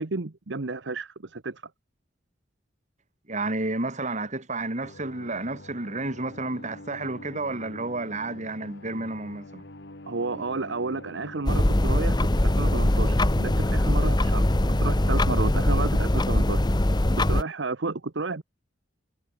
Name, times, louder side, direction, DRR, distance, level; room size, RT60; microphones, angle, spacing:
voice 1, 0.0-1.6 10.1-16.6 17.3-18.4, right 3 dB, 70° right, 1.0 m, -32 dB
voice 2, 3.3-9.6, right 2 dB, 40° right, 4.0 m, -31 dB
sound 1, 4.8-15.7, left 1 dB, 65° left, 2.9 m, -46 dB
sound 2, 11.5-17.4, left 1 dB, 25° left, 1.0 m, -22 dB
head